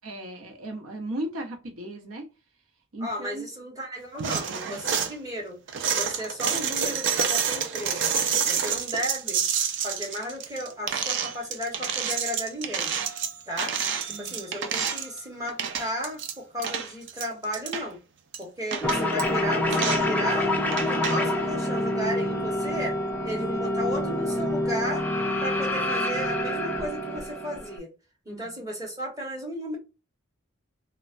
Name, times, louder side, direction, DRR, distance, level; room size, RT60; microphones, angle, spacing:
voice 1, 0.0-2.3 2.9-3.4 6.4-6.6 14.1-14.5 28.3-28.7, right 1 dB, 90° right, 0.8 m, -36 dB
voice 2, 3.0-5.6 5.9-8.1 8.5-9.4 9.8-12.9 13.5-13.8 14.0-18.0 18.4-20.6 20.9-25.1 25.4-27.9 28.3-29.8, equal, 15° right, 1.0 m, -34 dB
sound 1, 4.2-5.1 5.7-15.2 15.5-16.3 16.6-17.9 18.3-18.4 18.7-19.2 19.7-20.1 20.7-21.2, right 7 dB, 55° right, 0.4 m, -28 dB
sound 2, 18.8-27.8, left 1 dB, 10° left, 0.4 m, -27 dB
3.1 x 2.1 x 2.4 m
head